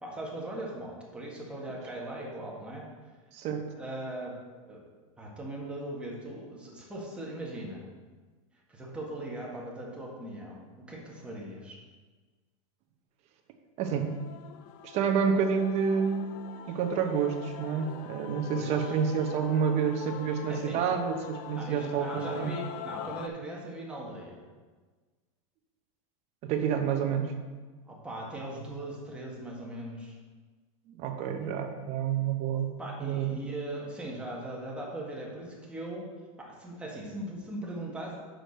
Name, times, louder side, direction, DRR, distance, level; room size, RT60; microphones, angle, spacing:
voice 1, 0.0-2.8 3.8-4.4 4.7-4.8 5.2-7.8 8.7-11.8 18.5-18.9 20.5-20.8 21.5-24.4 27.9-30.2 32.8-36.1 36.4-38.2, right 1 dB, 5° right, -4 dB, 1.8 m, -39 dB
voice 2, 3.3-3.6 13.8-14.2 14.8-16.3 16.7-22.6 26.4-27.3 30.9-33.4, right 7 dB, 40° right, 5 dB, 0.9 m, -29 dB
Male singing / Female singing / Musical instrument, 13.8-23.3, left 9 dB, 50° left, 0.5 m, -44 dB
6.4 x 4.9 x 6.4 m, 1.4 s
supercardioid pair, 140°, 17 cm